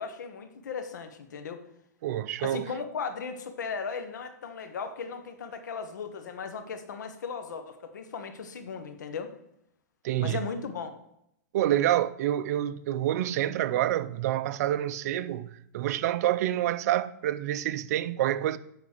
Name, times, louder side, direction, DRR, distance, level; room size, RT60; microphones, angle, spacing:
voice 1, 0.0-1.6 2.4-9.3 10.2-10.9, left 5 dB, 85° left, 1.2 m, -37 dB
voice 2, 2.0-2.7 10.0-10.5 11.5-18.6, right 12 dB, 60° right, 0.5 m, -27 dB
9.0 x 4.0 x 6.6 m
hypercardioid pair, 130°, 9 cm